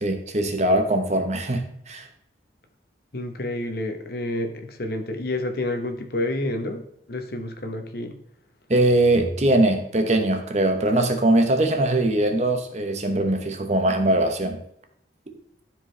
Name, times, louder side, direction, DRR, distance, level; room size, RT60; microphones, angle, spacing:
voice 1, 0.0-2.1 8.7-14.6, right 1 dB, 40° right, 6 dB, 1.1 m, -21 dB
voice 2, 3.1-6.8 7.1-8.2, left 1 dB, 60° left, 6 dB, 1.2 m, -29 dB
12.5 x 4.9 x 3.4 m, 0.73 s
head